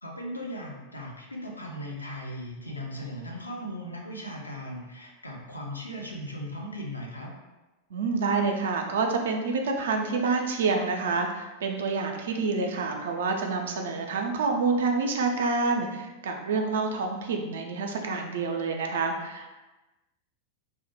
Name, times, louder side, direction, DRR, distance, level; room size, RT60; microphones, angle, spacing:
voice 1, 0.0-7.3, equal, 80° left, -1 dB, 0.4 m, -38 dB
voice 2, 7.9-19.5, right 4 dB, 60° right, 3 dB, 0.3 m, -28 dB
2.1 x 2.0 x 2.9 m, 1.1 s
figure-of-eight pair, 90°, 0 cm